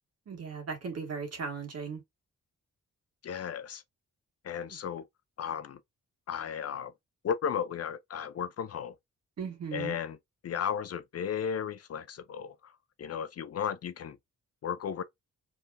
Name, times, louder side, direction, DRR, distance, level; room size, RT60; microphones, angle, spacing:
voice 1, 0.3-2.0 9.4-9.9, right 5 dB, 50° right, 1.8 m, -37 dB
voice 2, 3.2-3.8 4.4-5.1 5.4-5.8 6.3-6.9 7.2-8.9 9.7-10.2 10.4-12.7 13.0-14.2 14.6-15.0, left 8 dB, 50° left, 0.5 m, -34 dB
4.9 x 3.4 x 2.6 m
wide cardioid pair, 160°, 32 cm